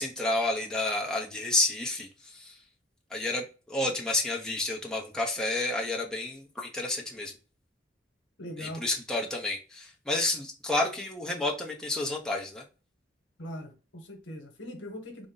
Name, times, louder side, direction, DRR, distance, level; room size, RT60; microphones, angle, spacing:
voice 1, 0.0-2.6 3.1-7.3 8.6-12.6, left 2 dB, 5° left, 0.6 m, -30 dB
voice 2, 8.4-8.9 13.4-15.3, equal, 85° left, 1.0 m, -41 dB
3.8 x 2.1 x 3.7 m
head